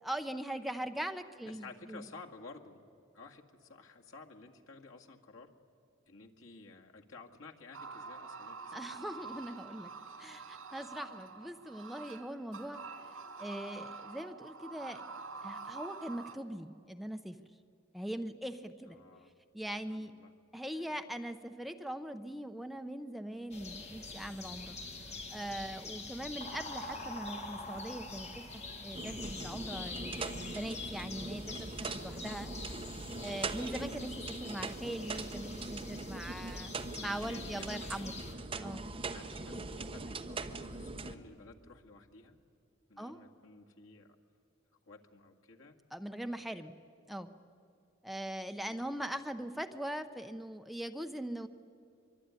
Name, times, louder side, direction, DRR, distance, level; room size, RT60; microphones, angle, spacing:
voice 1, 0.0-2.1 8.7-9.9 10.2-12.8 13.4-15.0 15.4-17.4 17.9-19.0 19.5-20.1 20.5-24.8 25.3-28.3 28.5-32.5 33.2-36.7 37.0-38.1 38.6-38.9 43.0-43.2 45.9-46.8 47.1-47.3 48.0-51.5, right 1 dB, ahead, 7 dB, 0.7 m, -41 dB
voice 2, 1.4-2.8 3.1-5.5 6.1-9.1 10.2-10.3 18.9-19.3 19.9-20.3 37.2-38.0 39.1-42.3 42.9-44.2 44.9-45.7 48.6-49.0, left 3 dB, 85° left, 1 dB, 2.1 m, -53 dB
sound 1, 7.7-16.4, right 4 dB, 90° right, 2.1 m, -47 dB
sound 2, 23.5-38.3, left 3 dB, 35° left, 2.3 m, -45 dB
sound 3, 28.9-41.1, right 3 dB, 25° right, 1.0 m, -41 dB
24.0 x 24.0 x 9.7 m, 2.4 s
head